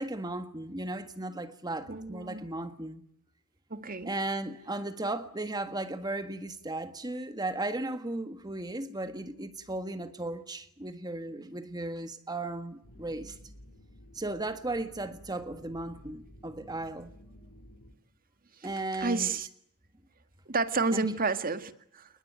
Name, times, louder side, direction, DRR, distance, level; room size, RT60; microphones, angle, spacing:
voice 1, 0.0-3.0 4.0-13.4 14.1-17.1 18.6-19.3 20.9-21.1, right 2 dB, 20° right, 1.6 m, -36 dB
voice 2, 1.9-2.5 3.7-4.1 18.6-19.5 20.5-22.1, right 4 dB, 40° right, 1.9 m, -31 dB
sound 1, 12.8-17.9, equal, 90° left, 3.5 m, -53 dB
29.5 x 20.5 x 9.3 m
head